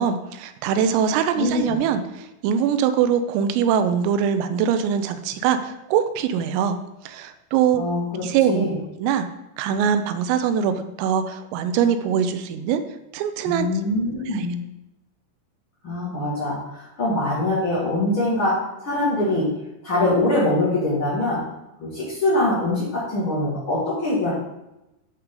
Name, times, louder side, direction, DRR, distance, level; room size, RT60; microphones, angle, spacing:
voice 1, 0.0-6.8 7.0-7.8 8.2-8.7 9.0-9.3 9.6-12.8 13.1-13.7 14.3-14.5, right 8 dB, 90° right, 9 dB, 3.3 m, -22 dB
voice 2, 7.7-8.7 13.5-14.5 15.8-18.5 18.8-19.5 19.8-21.4 21.8-24.3, left 2 dB, 80° left, -8 dB, 1.1 m, -23 dB
12.0 x 4.7 x 3.8 m, 0.92 s
omnidirectional pair, 5.9 m